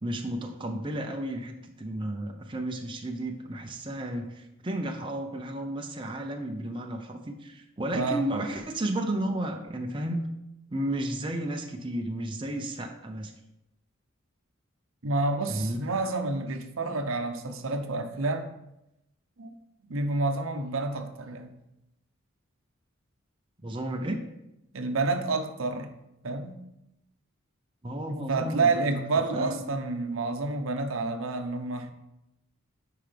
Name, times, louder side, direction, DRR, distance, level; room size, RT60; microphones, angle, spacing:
voice 1, 0.0-10.3 10.7-13.3 15.5-15.8 23.6-24.2 27.8-28.9 29.3-29.6, right 1 dB, 25° right, 3 dB, 0.6 m, -33 dB
voice 2, 7.9-8.3 15.0-18.5 19.4-19.5 19.9-21.5 24.7-25.9 26.2-26.6 28.1-31.9, right 3 dB, 80° right, 7 dB, 0.8 m, -29 dB
9.5 x 4.7 x 3.4 m, 0.88 s
head